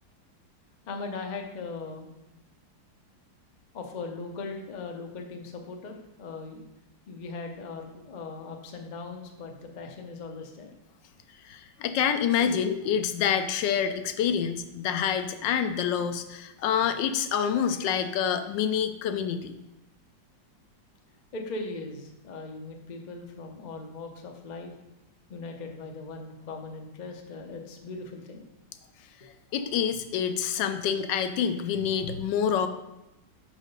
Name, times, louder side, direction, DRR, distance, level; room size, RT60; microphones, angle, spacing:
voice 1, 0.9-2.1 3.7-6.6 7.1-10.7 11.3-11.7 12.4-12.9 21.3-24.7 25.3-28.4, left 3 dB, 50° left, 3 dB, 0.5 m, -39 dB
voice 2, 11.5-19.5 29.5-32.7, left 8 dB, 75° left, 9 dB, 1.2 m, -27 dB
6.3 x 5.0 x 5.4 m, 0.94 s
omnidirectional pair, 2.1 m